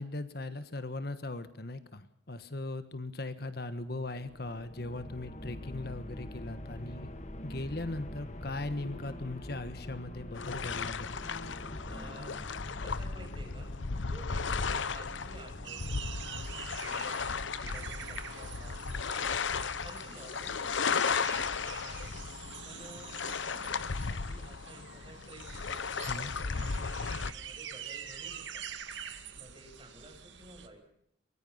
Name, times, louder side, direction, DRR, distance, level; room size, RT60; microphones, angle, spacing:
voice 1, 0.0-7.1 7.4-11.2 26.0-26.3, left 2 dB, 55° left, 11 dB, 1.4 m, -39 dB
sound 1, 3.9-18.8, left 1 dB, 40° left, 1.9 m, -46 dB
sound 2, 10.3-27.3, left 5 dB, 80° left, 0.9 m, -35 dB
voice 2, 11.9-12.5 12.8-13.8 14.1-16.0 16.8-22.1 22.6-28.6 29.3-30.8, right 1 dB, 25° right, 2 dB, 7.6 m, -53 dB
sound 3, 15.6-30.7, right 8 dB, 75° right, 2.1 m, -46 dB
23.5 x 20.0 x 5.7 m, 0.73 s
head